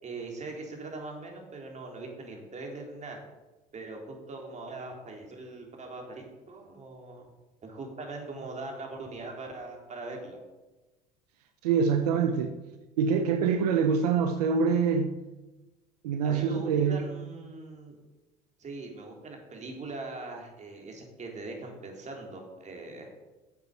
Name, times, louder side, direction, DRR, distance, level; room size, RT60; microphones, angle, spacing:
voice 1, 0.0-3.2 3.7-7.3 7.6-10.4 16.2-18.0 18.6-23.1, right 3 dB, 35° right, 3.7 m, -41 dB
voice 2, 11.6-12.5 13.0-15.2 16.0-17.0, right 6 dB, 85° right, 0.8 m, -25 dB
9.3 x 8.0 x 6.7 m
hypercardioid pair, 75°, 20 cm